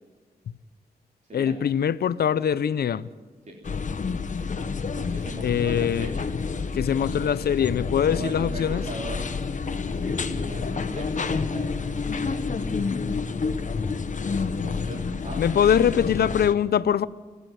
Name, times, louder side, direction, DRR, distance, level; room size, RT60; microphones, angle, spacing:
voice 1, 1.3-3.1 5.4-6.1 6.7-8.8 15.4-17.1, left 8 dB, 80° left, 18 dB, 0.6 m, -23 dB
sound 1, 3.6-16.5, left 4 dB, 50° left, 1.2 m, -29 dB
voice 2, 4.9-6.3 7.1-7.3 8.0-9.3 9.8-12.9 14.3-16.4, right 2 dB, 50° right, -1 dB, 3.4 m, -40 dB
29.0 x 9.9 x 9.3 m, 1.5 s
cardioid pair, 65°, 16 cm